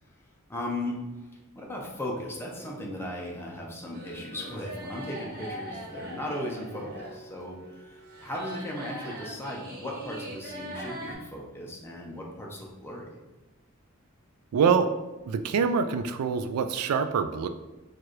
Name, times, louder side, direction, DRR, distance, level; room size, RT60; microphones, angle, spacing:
voice 1, 0.5-0.9 1.6-7.6 7.9-8.0 8.2-13.1, left 1 dB, 10° left, -2 dB, 0.6 m, -36 dB
sound 1, 3.9-11.1, equal, 45° right, 0.9 m, -41 dB
voice 2, 14.5-14.9 15.3-17.5, right 6 dB, 80° right, 9 dB, 0.3 m, -25 dB
4.5 x 2.4 x 3.0 m, 1.1 s
head